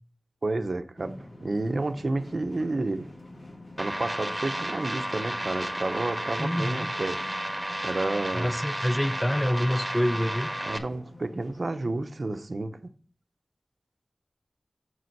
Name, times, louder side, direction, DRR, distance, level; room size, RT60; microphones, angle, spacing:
voice 1, 0.4-3.1 3.8-7.2 7.8-8.5 10.6-12.9, right 2 dB, 60° right, 0.8 m, -30 dB
sound 1, 1.0-12.0, left 2 dB, 80° left, 2.9 m, -48 dB
sound 2, 3.8-10.8, right 1 dB, 15° right, 1.6 m, -32 dB
voice 2, 6.4-6.9 8.3-10.5, equal, 10° left, 0.7 m, -26 dB
7.9 x 6.2 x 4.7 m
wide cardioid pair, 60°, 0 cm